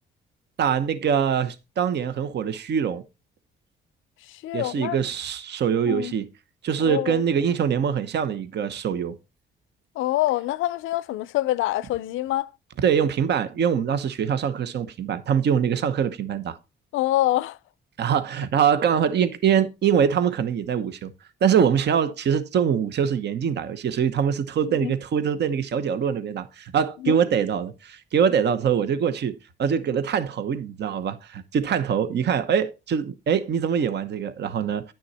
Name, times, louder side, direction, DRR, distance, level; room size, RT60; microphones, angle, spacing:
voice 1, 0.6-3.0 4.5-6.3 6.6-9.2 12.8-16.6 18.0-21.1 21.4-29.3 29.6-34.9, right 7 dB, 60° right, 1.0 m, -23 dB
voice 2, 4.3-5.0 5.9-6.1 6.8-7.2 10.0-12.5 16.9-17.6 24.7-24.9 27.0-27.2, left 15 dB, 85° left, 0.5 m, -25 dB
10.0 x 6.2 x 4.2 m
cardioid pair, 90°, 20 cm